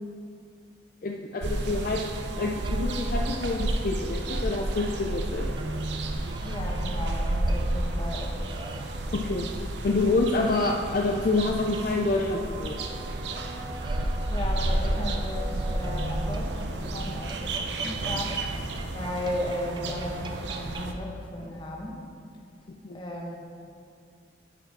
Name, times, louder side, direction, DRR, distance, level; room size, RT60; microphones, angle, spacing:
voice 1, 1.0-2.0 2.4-5.5 9.1-9.5 9.8-12.9 22.8-23.0, left 3 dB, 50° left, 1 dB, 0.4 m, -27 dB
sound 1, 1.4-20.9, right 1 dB, 70° right, 0.6 m, -31 dB
sound 2, 1.8-4.3 5.6-11.2 11.7-20.9, right 2 dB, 25° right, 0.4 m, -42 dB
voice 2, 6.3-8.8 14.3-18.3 18.9-22.0 22.9-23.4, left 1 dB, 25° left, -1 dB, 1.1 m, -35 dB
8.7 x 5.0 x 5.9 m, 2.3 s
head